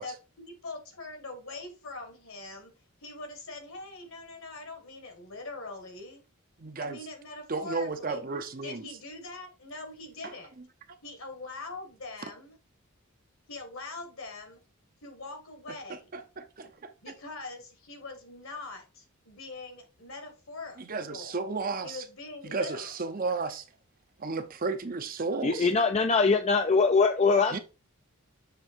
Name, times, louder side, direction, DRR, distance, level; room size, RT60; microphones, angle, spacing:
voice 1, 0.0-2.7 3.0-6.2 6.8-8.3 8.6-10.5 11.0-12.6 13.5-14.6 15.0-16.1 17.0-21.4 21.8-23.0, left 3 dB, 70° left, 1.9 m, -43 dB
voice 2, 6.6-7.0 7.5-8.8 16.1-16.7 20.8-22.0 22.4-23.6 24.2-25.7 27.5-27.6, right 4 dB, 40° right, 0.6 m, -33 dB
voice 3, 25.4-27.6, left 4 dB, 30° left, 0.4 m, -23 dB
6.7 x 3.5 x 4.4 m
head